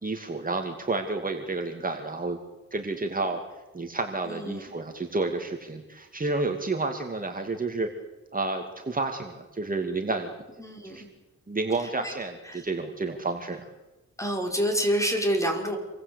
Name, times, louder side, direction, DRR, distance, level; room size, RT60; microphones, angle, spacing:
voice 1, 0.0-2.4 2.7-3.4 3.7-7.9 8.3-10.3 10.8-11.0 11.5-13.7, right 3 dB, 30° right, 4 dB, 2.6 m, -30 dB
voice 2, 4.3-4.6 10.6-11.1 11.8-12.1 12.4-12.7 14.2-15.8, equal, 10° left, 3 dB, 6.0 m, -28 dB
28.5 x 23.5 x 8.4 m, 1.1 s
wide cardioid pair, 105°, 30 cm